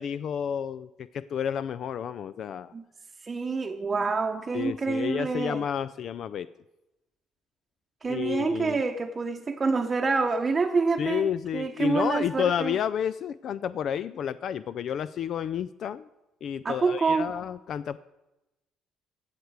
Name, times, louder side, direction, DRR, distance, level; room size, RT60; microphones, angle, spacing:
voice 1, 0.0-2.7 4.5-6.5 8.1-8.8 11.0-16.1 16.4-18.0, left 8 dB, 60° left, 15 dB, 0.3 m, -30 dB
voice 2, 3.2-5.6 8.0-12.8 16.6-17.3, right 4 dB, 35° right, 4 dB, 0.8 m, -27 dB
16.5 x 6.7 x 4.7 m, 0.97 s
supercardioid pair, 65°, 0 cm